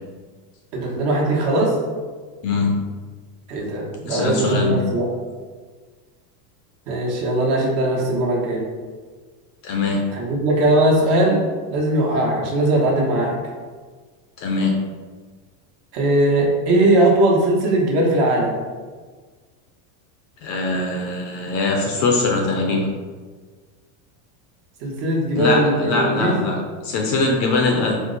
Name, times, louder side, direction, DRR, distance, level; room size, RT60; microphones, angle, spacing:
voice 1, 0.7-1.8 3.5-5.1 6.9-8.7 10.1-11.4 11.7-13.4 15.9-18.6 24.8-26.5, right 1 dB, 50° right, -2 dB, 1.1 m, -19 dB
voice 2, 2.4-2.8 4.1-4.8 9.6-10.0 14.4-14.7 20.4-22.9 25.4-26.6 26.8-28.0, left 3 dB, 40° left, 0 dB, 0.4 m, -21 dB
4.4 x 2.1 x 3.8 m, 1.5 s
supercardioid pair, 155°, 48 cm